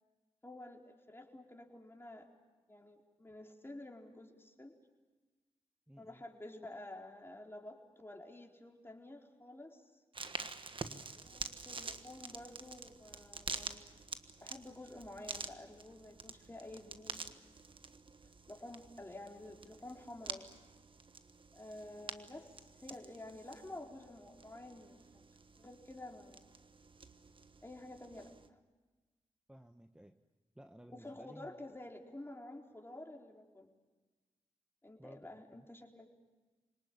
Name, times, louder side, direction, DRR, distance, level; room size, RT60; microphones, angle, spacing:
voice 1, 0.4-2.3 2.7-4.7 6.0-10.0 11.1-13.8 14.4-17.3 18.5-20.5 21.5-22.5 22.8-25.0 25.6-26.5 27.6-28.6 30.9-33.7 34.8-36.1, left 1 dB, 20° left, 1 dB, 4.3 m, -50 dB
voice 2, 5.9-6.2 10.8-11.0 29.5-30.2 30.5-31.5 35.0-35.7, equal, 5° right, 6 dB, 1.2 m, -56 dB
sound 1, 10.1-28.5, right 4 dB, 50° right, 1.4 m, -48 dB
27.0 x 19.0 x 8.7 m, 1.2 s
cardioid pair, 45°, 11 cm